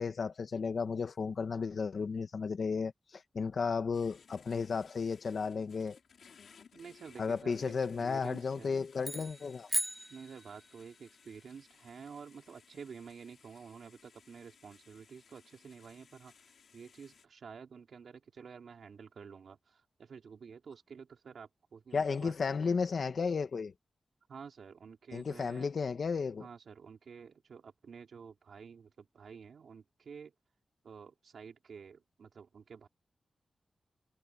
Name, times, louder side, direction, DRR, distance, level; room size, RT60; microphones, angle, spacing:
voice 1, 0.0-6.0 7.2-9.7 21.9-23.7 25.1-26.5, left 5 dB, 60° left, 1.9 m, -34 dB
sound 1, 3.9-17.2, left 6 dB, 85° left, 7.0 m, -61 dB
voice 2, 6.7-8.8 10.1-22.6 24.3-25.7 26.4-30.3 30.8-32.9, right 6 dB, 80° right, 3.9 m, -50 dB
sound 2, 9.0-10.9, right 1 dB, 10° right, 0.6 m, -37 dB
wide cardioid pair, 170°, 0 cm